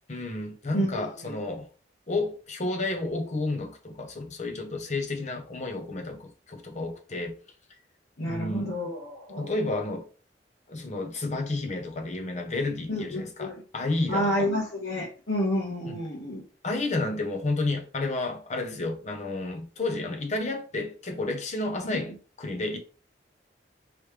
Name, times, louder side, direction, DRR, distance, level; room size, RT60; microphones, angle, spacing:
voice 1, 0.1-1.7 2.1-7.4 8.2-8.8 9.3-10.1 10.7-14.5 15.8-16.0 16.6-22.1 22.4-22.8, left 2 dB, 40° left, 0.8 m, -31 dB
voice 2, 0.7-1.4 8.2-9.5 12.9-13.6 14.1-16.4 21.8-22.0, equal, 85° left, 1.2 m, -30 dB
3.2 x 3.1 x 3.3 m
head